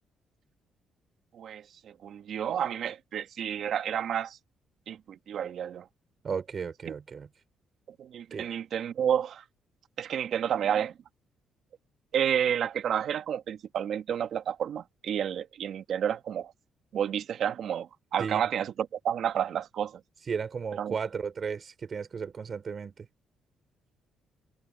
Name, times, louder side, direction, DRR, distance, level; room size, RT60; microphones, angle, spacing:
voice 1, 1.3-4.4 4.9-5.9 8.0-9.4 10.0-10.9 12.1-16.5 16.9-20.0 20.8-20.9, right 9 dB, 65° right, 1.6 m, -30 dB
voice 2, 6.2-7.3 8.3-8.5 18.2-18.4 20.2-23.1, right 6 dB, 45° right, 5.9 m, -34 dB
cardioid pair, 90°, 0 cm